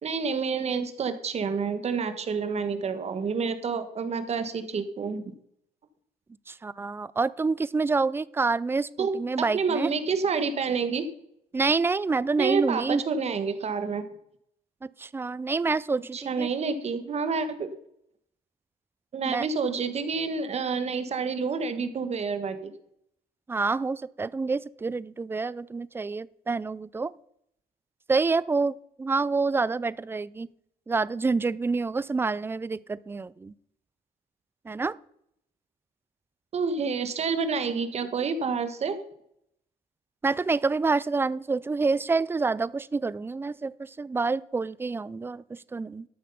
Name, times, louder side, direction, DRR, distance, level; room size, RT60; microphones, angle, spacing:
voice 1, 0.0-5.3 9.0-9.1 9.5-11.1 12.4-14.0 16.1-17.7 19.1-22.7 36.5-39.0, right 5 dB, 40° right, 10 dB, 1.4 m, -28 dB
voice 2, 6.5-9.9 11.5-13.0 15.0-16.5 19.2-19.5 23.5-27.1 28.1-30.5 30.9-33.5 34.7-34.9 40.2-46.1, right 4 dB, 15° right, 20 dB, 0.4 m, -27 dB
13.0 x 6.5 x 5.5 m, 0.72 s
cardioid pair, 110°, 17 cm